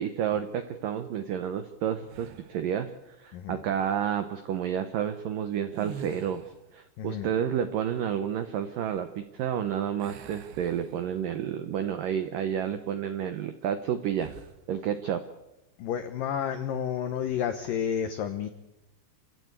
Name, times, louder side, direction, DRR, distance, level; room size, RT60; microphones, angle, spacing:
voice 1, 0.0-2.9 3.2-6.4 6.7-14.3 14.7-15.2, right 9 dB, 90° right, 9 dB, 1.9 m, -30 dB
sound 1, 2.1-2.7 5.6-6.7 10.0-11.4 11.9-12.1 14.1-14.6, right 8 dB, 70° right, 3.2 m, -45 dB
voice 2, 7.0-7.3 15.8-18.5, left 8 dB, 85° left, 9 dB, 1.9 m, -31 dB
27.0 x 16.0 x 8.2 m, 0.97 s
omnidirectional pair, 5.4 m